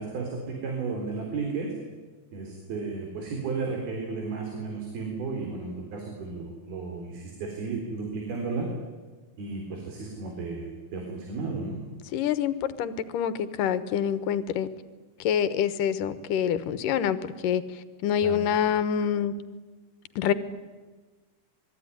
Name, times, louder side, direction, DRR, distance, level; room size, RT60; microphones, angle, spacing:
voice 1, 0.0-1.7 2.3-8.7 9.4-11.8 18.2-18.4, right 4 dB, 80° right, 1 dB, 5.8 m, -33 dB
voice 2, 12.1-14.7 15.2-17.2 17.4-17.6 18.0-19.3 20.2-20.3, left 9 dB, 70° left, 13 dB, 2.7 m, -26 dB
27.5 x 22.0 x 10.0 m, 1.3 s
omnidirectional pair, 4.3 m